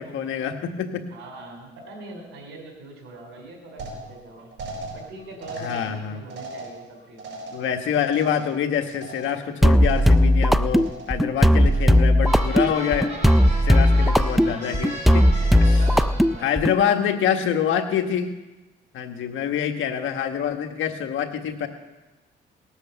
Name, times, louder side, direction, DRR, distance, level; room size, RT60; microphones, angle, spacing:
voice 1, 0.0-1.0 5.6-6.2 7.5-13.1 13.7-15.2 16.4-18.3 18.9-21.7, left 8 dB, 80° left, 5 dB, 1.5 m, -26 dB
voice 2, 1.1-4.5 4.9-7.5 15.4-17.3, right 2 dB, 85° right, 3 dB, 3.8 m, -42 dB
sound 1, 3.8-9.6 9.8-10.4 10.7-11.3 11.6-12.1 12.5-13.0, right 2 dB, 70° right, 4.7 m, -40 dB
sound 2, 9.6-16.8, equal, ahead, 0.4 m, -17 dB
sound 3, 12.2-16.5, right 1 dB, 35° right, 5.7 m, -35 dB
18.5 x 8.2 x 6.9 m, 1.1 s
cardioid pair, 90°, 20 cm